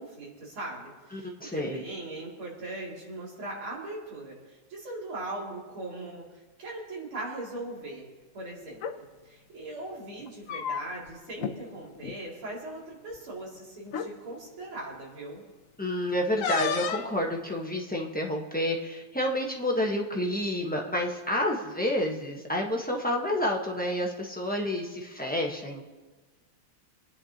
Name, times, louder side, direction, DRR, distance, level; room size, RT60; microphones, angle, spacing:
voice 1, 0.0-6.3 6.6-8.0 8.3-15.4, right 2 dB, 85° right, -4 dB, 3.7 m, -39 dB
voice 2, 1.1-1.8 15.8-25.8, left 1 dB, 5° left, -1 dB, 0.7 m, -29 dB
sound 1, 8.7-9.0 10.2-11.1 11.4-11.6 11.9-12.2 13.1-13.2 13.9-14.1 16.4-17.1, left 7 dB, 75° left, 0.7 m, -32 dB
25.5 x 9.9 x 2.9 m, 1.3 s
omnidirectional pair, 2.3 m